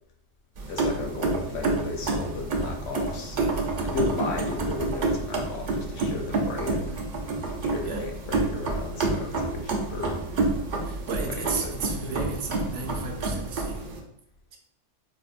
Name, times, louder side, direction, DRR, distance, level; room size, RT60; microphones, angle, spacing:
sound 1, 0.6-14.0, right 3 dB, 55° right, 0.5 m, -29 dB
voice 1, 0.7-3.4 3.8-7.0 7.6-10.2 11.2-11.7 12.0-12.1, left 4 dB, 65° left, 2 dB, 0.8 m, -34 dB
voice 2, 10.2-10.5 10.8-13.8, right 4 dB, 75° right, 3 dB, 0.9 m, -34 dB
4.6 x 2.1 x 2.4 m, 0.72 s
omnidirectional pair, 1.3 m